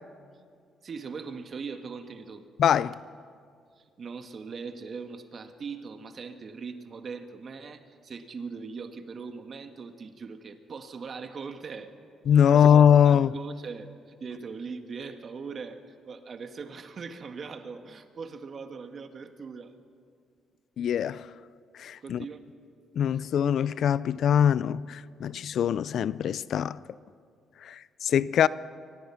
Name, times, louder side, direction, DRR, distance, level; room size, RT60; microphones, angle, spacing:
voice 1, 0.8-2.5 3.8-11.9 12.5-19.7 22.0-22.5 23.1-23.3, right 5 dB, 50° right, 1.5 m, -40 dB
voice 2, 2.6-3.0 12.3-13.3 20.8-21.3 21.8-22.2 23.0-26.8 27.6-28.5, left 9 dB, 65° left, 0.4 m, -22 dB
23.5 x 19.0 x 5.8 m
cardioid pair, 90°, 0 cm